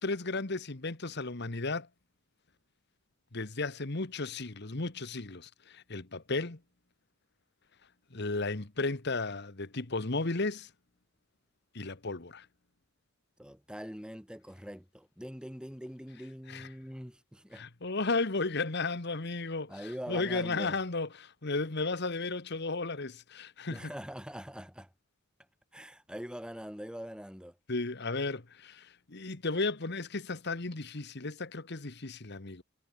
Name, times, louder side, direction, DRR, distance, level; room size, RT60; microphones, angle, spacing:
voice 1, 0.0-1.9 3.3-6.6 8.1-10.7 11.7-12.4 16.5-16.7 17.5-19.7 20.1-23.8 27.7-32.6, left 3 dB, 55° left, 1.6 m, -34 dB
voice 2, 13.4-17.7 19.7-20.8 23.7-24.9 25.7-27.6, equal, 5° right, 5.4 m, -43 dB
head